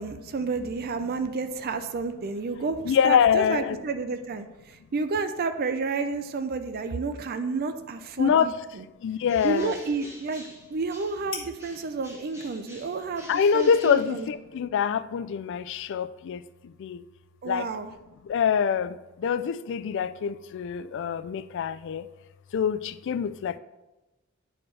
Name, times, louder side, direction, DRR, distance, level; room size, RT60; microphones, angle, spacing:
voice 1, 0.0-2.8 3.0-4.5 4.9-8.5 9.4-10.4 10.7-13.3 13.5-14.3 17.4-17.9, right 4 dB, 45° right, 9 dB, 0.4 m, -30 dB
voice 2, 2.8-3.8 8.2-8.6 9.0-9.7 13.3-17.0 17.4-17.7 18.2-22.1 22.5-23.6, left 7 dB, 60° left, 12 dB, 0.3 m, -25 dB
sound 1, 7.0-14.7, left 4 dB, 25° left, 1.2 m, -49 dB
Bird, 9.2-11.3 11.6-14.7, equal, 15° right, 1.5 m, -48 dB
9.9 x 4.3 x 3.3 m, 1.0 s
head